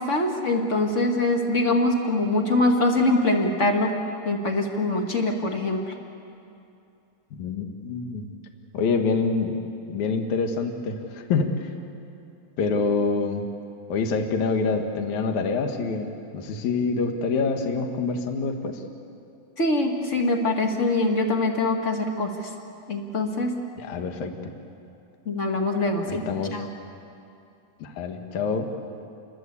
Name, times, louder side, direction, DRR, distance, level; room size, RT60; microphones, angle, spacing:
voice 1, 0.0-3.9 4.2-5.9 19.6-22.3 22.9-23.5 25.2-26.2 26.5-26.7, left 2 dB, 35° left, 2 dB, 1.1 m, -23 dB
voice 2, 7.4-8.3 8.7-9.5 9.9-11.7 12.6-13.4 13.9-18.8 23.8-24.4 26.0-26.6 27.8-28.7, left 4 dB, 55° left, 4 dB, 2.8 m, -26 dB
28.5 x 22.0 x 8.4 m, 2.6 s
omnidirectional pair, 4.5 m